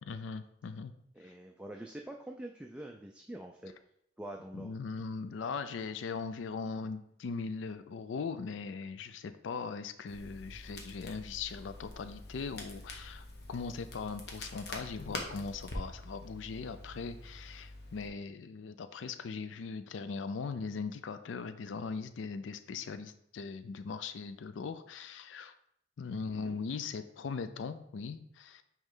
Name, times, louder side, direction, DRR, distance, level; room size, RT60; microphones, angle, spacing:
voice 1, 0.1-0.9 1.2-1.3 4.5-25.5 26.0-28.6, left 5 dB, 85° left, 11 dB, 0.4 m, -40 dB
voice 2, 1.2-3.7 4.2-4.7 26.3-26.6, right 1 dB, 5° right, 1 dB, 0.3 m, -45 dB
Crackle, 10.1-18.1, left 2 dB, 55° left, 1.0 m, -45 dB
8.7 x 3.1 x 3.7 m, 0.72 s
head